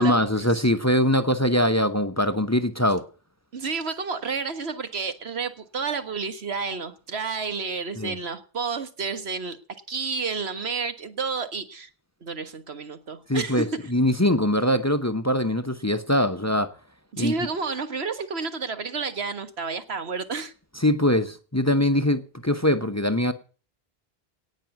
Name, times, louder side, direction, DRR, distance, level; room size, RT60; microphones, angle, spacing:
voice 1, 0.0-3.0 8.0-8.2 13.3-16.7 17.2-17.3 20.8-23.3, left 1 dB, 15° left, 0.8 m, -22 dB
voice 2, 3.5-9.6 9.9-11.9 12.2-13.9 17.1-20.5, right 4 dB, 85° right, 1.7 m, -30 dB
18.0 x 6.1 x 9.2 m
omnidirectional pair, 1.0 m